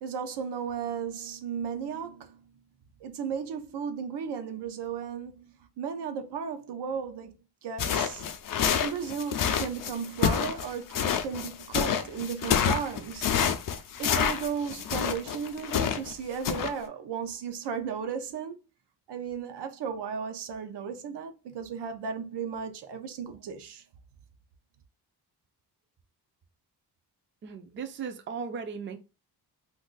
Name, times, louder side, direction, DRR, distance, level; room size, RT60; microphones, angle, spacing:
voice 1, 0.0-2.4 3.0-7.4 7.6-8.2 8.8-13.3 14.0-18.6 19.1-23.8, right 7 dB, 85° right, 0.6 m, -35 dB
sound 1, 7.8-16.1 16.4-16.7, left 8 dB, 55° left, 0.5 m, -28 dB
voice 2, 27.4-29.0, right 6 dB, 30° right, 0.4 m, -37 dB
2.5 x 2.4 x 3.8 m
wide cardioid pair, 140°, 40 cm